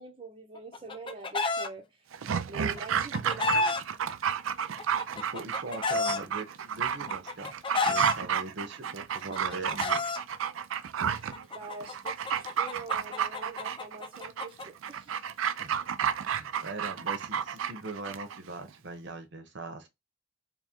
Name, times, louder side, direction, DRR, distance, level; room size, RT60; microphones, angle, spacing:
voice 1, 0.0-2.0 2.5-3.8 11.5-15.2, right 3 dB, 30° right, 0.8 m, -44 dB
Chicken rooster, 0.5-1.7 2.8-3.8 4.8-6.2 7.1-8.1 9.1-10.2 11.3-14.6, left 3 dB, 25° left, 0.5 m, -30 dB
Dog, 2.1-18.4 18.7-18.8, right 8 dB, 85° right, 0.4 m, -31 dB
voice 2, 5.1-7.5 7.8-10.0 15.6-15.8 16.4-19.9, right 2 dB, 60° right, 0.8 m, -41 dB
3.6 x 2.2 x 4.2 m
head